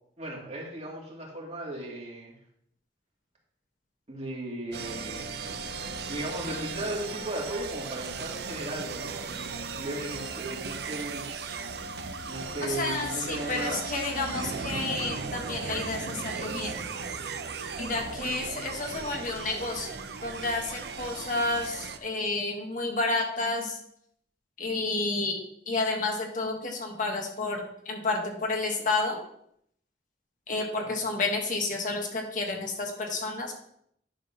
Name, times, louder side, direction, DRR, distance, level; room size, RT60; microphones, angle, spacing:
voice 1, 0.2-2.3 4.1-5.6 6.0-11.3 12.2-13.9 30.8-31.0, right 1 dB, 40° right, -3 dB, 2.3 m, -36 dB
sound 1, 4.7-22.0, right 4 dB, 65° right, 0.6 m, -37 dB
voice 2, 12.6-17.0 17.8-19.9 20.2-23.8 24.6-25.4 25.7-29.2 30.5-33.6, left 3 dB, 50° left, 2 dB, 1.5 m, -30 dB
10.5 x 3.9 x 5.7 m, 0.69 s
head